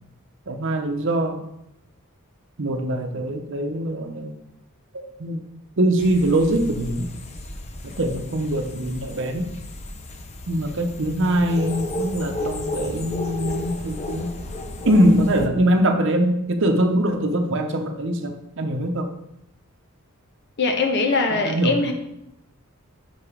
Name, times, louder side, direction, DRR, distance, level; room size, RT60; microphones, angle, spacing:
voice 1, 0.5-1.4 2.6-4.4 4.9-5.4 5.8-7.1 7.8-9.5 10.5-14.3 14.8-19.1 21.3-21.7, right 1 dB, 60° right, 5 dB, 0.8 m, -22 dB
sound 1, 6.0-15.5, left 2 dB, 30° left, 0.6 m, -34 dB
voice 2, 20.6-21.9, left 3 dB, 55° left, 3 dB, 1.0 m, -21 dB
6.1 x 4.9 x 5.0 m, 0.83 s
head